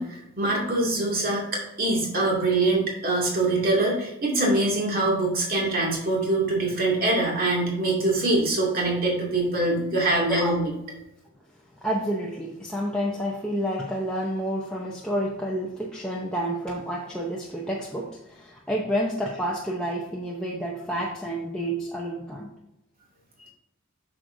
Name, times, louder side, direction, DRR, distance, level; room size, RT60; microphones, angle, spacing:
voice 1, 0.0-1.4 1.8-10.7, right 2 dB, 40° right, -3 dB, 2.2 m, -24 dB
voice 2, 11.8-22.5, equal, 5° left, -4 dB, 0.6 m, -29 dB
8.3 x 6.3 x 2.6 m, 0.89 s
head